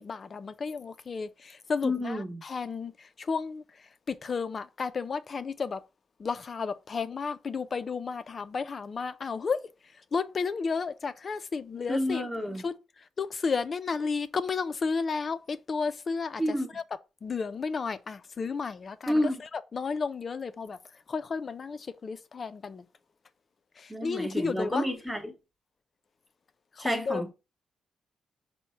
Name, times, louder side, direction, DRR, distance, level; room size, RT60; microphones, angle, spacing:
voice 1, 0.0-3.6 4.1-5.8 6.2-9.6 10.1-12.2 12.6-12.7 13.2-16.8 17.2-20.8 21.1-22.9 23.8-24.9 26.8-27.2, left 5 dB, 35° left, 0.3 m, -32 dB
voice 2, 1.8-2.4 11.9-12.6 16.4-16.7 19.1-19.4 23.9-25.3 26.8-27.3, equal, 5° right, 0.7 m, -29 dB
5.6 x 2.0 x 4.3 m
wide cardioid pair, 155°, 0 cm